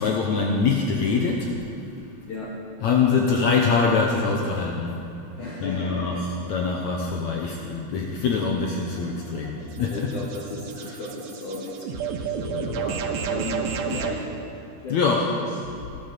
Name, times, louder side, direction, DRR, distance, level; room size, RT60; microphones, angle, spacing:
voice 1, 0.0-1.5 2.8-5.0 5.6-10.1 12.5-12.7 14.9-15.2, left 5 dB, 80° left, 0 dB, 1.6 m, -24 dB
voice 2, 2.3-2.7 5.4-6.2 9.9-14.3 14.8-15.0 15.3-15.4, left 2 dB, 55° left, -5 dB, 2.9 m, -34 dB
sound 1, 8.8-14.2, right 7 dB, 90° right, 3.2 m, -32 dB
17.5 x 11.5 x 6.9 m, 2.9 s
omnidirectional pair, 4.8 m